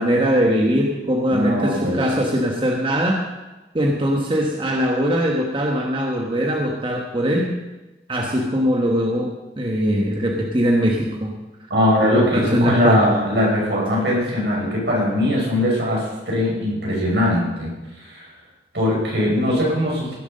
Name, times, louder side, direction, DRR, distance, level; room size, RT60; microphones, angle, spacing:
voice 1, 0.0-3.2 3.7-7.6 8.1-11.4 12.1-13.0, equal, 30° right, 0 dB, 1.3 m, -21 dB
voice 2, 1.3-2.0 11.7-18.3 18.7-20.1, left 1 dB, 75° right, -3 dB, 6.0 m, -21 dB
17.0 x 7.9 x 6.6 m, 1.1 s
head